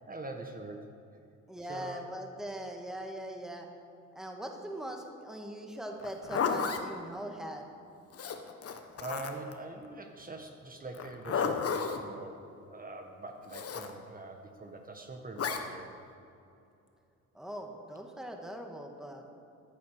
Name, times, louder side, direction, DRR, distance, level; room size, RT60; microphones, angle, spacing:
voice 1, 0.1-0.9 1.7-2.1 9.0-12.4 12.7-15.9, right 2 dB, 30° right, 3 dB, 1.6 m, -43 dB
voice 2, 1.5-3.7 4.1-7.7 17.3-19.3, right 1 dB, ahead, 2 dB, 1.7 m, -41 dB
Zipper (clothing), 6.0-6.8 8.1-9.5 10.9-12.0 13.5-13.9 15.4-15.6, left 6 dB, 50° left, 1.4 m, -32 dB
15.0 x 9.5 x 6.7 m, 2.6 s
cardioid pair, 90°, 30 cm